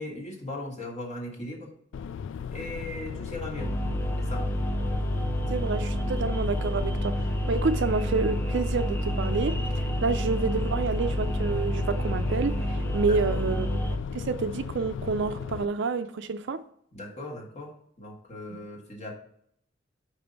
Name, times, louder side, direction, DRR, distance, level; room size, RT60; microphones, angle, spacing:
voice 1, 0.0-1.7 2.5-3.8 4.2-4.5 12.9-13.4 16.9-19.2, left 1 dB, 35° left, -1 dB, 1.5 m, -38 dB
sound 1, 1.9-15.7, left 6 dB, 65° left, 0.3 m, -36 dB
sound 2, 3.6-14.0, equal, 10° left, 0.5 m, -29 dB
voice 2, 5.5-9.6 10.0-13.8 14.1-16.6, right 4 dB, 65° right, 10 dB, 0.5 m, -28 dB
5.1 x 5.1 x 5.3 m, 0.67 s
head